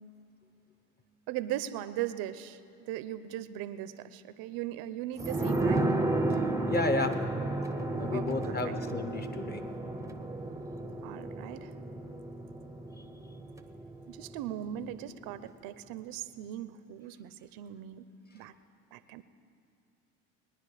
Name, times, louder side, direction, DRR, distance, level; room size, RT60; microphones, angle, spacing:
voice 1, 1.3-5.9 8.1-8.8 11.0-11.7 14.1-18.1 18.3-18.5 18.9-19.2, right 12 dB, 65° right, 13 dB, 0.7 m, -39 dB
sound 1, 5.2-14.5 14.8-14.9, right 2 dB, 10° right, 0.8 m, -33 dB
voice 2, 6.7-7.2 8.0-9.6, left 2 dB, 25° left, 8 dB, 1.1 m, -32 dB
21.0 x 9.8 x 4.9 m, 2.7 s
supercardioid pair, 100°, 39 cm